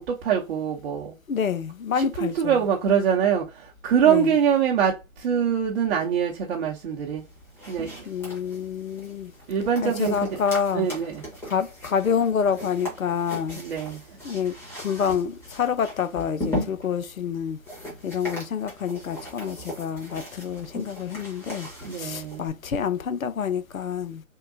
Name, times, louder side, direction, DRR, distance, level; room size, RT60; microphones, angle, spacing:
voice 1, 0.0-1.2 2.0-7.2 7.7-8.1 9.5-10.4 10.7-11.2 13.5-14.0 21.8-22.6, right 8 dB, 50° right, 0.8 m, -24 dB
voice 2, 1.3-2.6 4.0-4.3 8.1-9.3 9.8-10.9 11.4-13.6 14.2-17.6 18.0-21.7 21.9-24.2, left 7 dB, 90° left, 0.6 m, -27 dB
sound 1, 7.2-22.5, left 1 dB, 5° left, 1.0 m, -38 dB
3.6 x 2.3 x 2.6 m
figure-of-eight pair, 130°, 40 cm